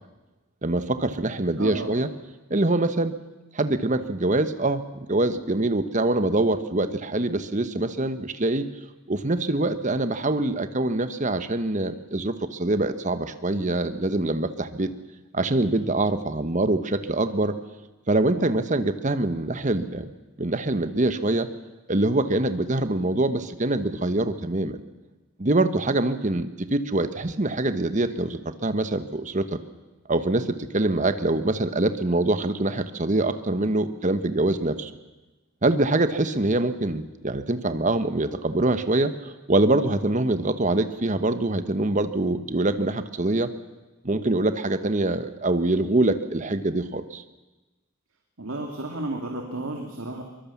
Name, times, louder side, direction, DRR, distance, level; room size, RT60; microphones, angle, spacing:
voice 1, 0.6-2.1 2.5-3.1 3.5-8.7 9.1-14.9 15.3-17.5 18.1-20.1 20.4-21.5 21.9-24.8 25.4-29.6 30.1-34.9 35.6-43.5 44.0-47.2, right 2 dB, 35° right, 10 dB, 1.1 m, -24 dB
voice 2, 1.6-1.9 48.4-50.2, right 2 dB, 70° right, 2 dB, 2.4 m, -32 dB
23.5 x 21.5 x 7.3 m, 1.1 s
head